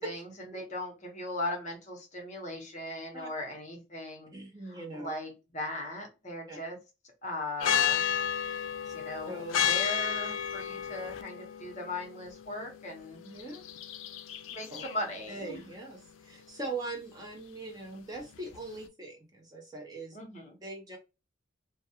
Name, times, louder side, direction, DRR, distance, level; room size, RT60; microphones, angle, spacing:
voice 1, 0.0-4.3 4.6-6.8 7.2-8.0 8.9-13.2 14.5-15.6 20.1-20.6, left 1 dB, 35° left, 2 dB, 0.8 m, -38 dB
voice 2, 4.3-5.1 6.5-6.6 8.5-8.9 9.3-9.7 13.2-13.7 14.7-14.8 15.3-20.2 20.6-21.0, right 2 dB, 20° right, 1 dB, 0.6 m, -41 dB
sound 1, 7.6-18.9, left 9 dB, 80° left, 0.4 m, -34 dB
2.3 x 2.2 x 2.7 m, 0.28 s
head